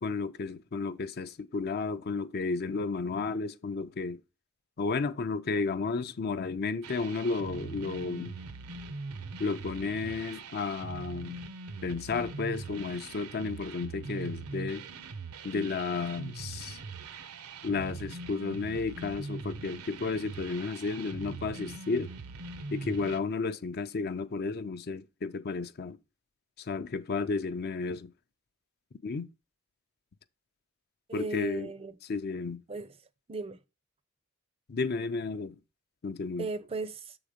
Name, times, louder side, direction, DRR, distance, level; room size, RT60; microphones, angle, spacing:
voice 1, 0.0-4.2 4.8-8.4 9.4-11.4 11.8-14.9 15.4-16.8 17.6-22.1 22.7-26.0 26.6-28.1 29.0-29.3 31.1-31.7 32.1-32.6 34.7-35.6 36.0-36.5, left 4 dB, 45° left, 0.5 m, -32 dB
sound 1, 6.8-23.2, right 3 dB, 85° right, 0.8 m, -42 dB
voice 2, 31.1-32.0 32.7-32.9 33.3-33.6 36.4-37.2, right 3 dB, 25° right, 0.5 m, -36 dB
7.2 x 3.9 x 4.9 m
head